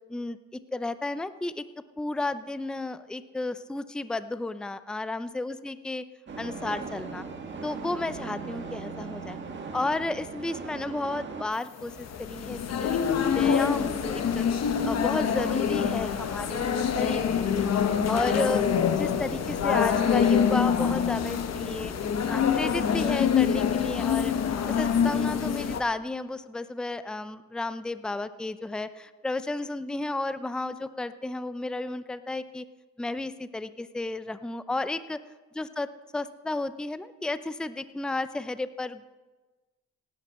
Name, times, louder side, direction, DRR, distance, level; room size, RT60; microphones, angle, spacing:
voice 1, 0.1-1.6 2.0-6.0 6.4-7.3 7.6-9.4 9.7-13.0 13.3-14.4 14.8-17.7 18.1-21.9 22.3-24.3 24.7-32.7 33.0-35.2 35.6-39.2, left 2 dB, 5° left, 13 dB, 0.5 m, -33 dB
sound 1, 6.3-11.4, right 4 dB, 40° right, 1.6 m, -38 dB
sound 2, 11.8-25.8, left 7 dB, 60° left, 1.1 m, -25 dB
18.0 x 9.4 x 4.2 m, 1.2 s
cardioid pair, 90°, 30 cm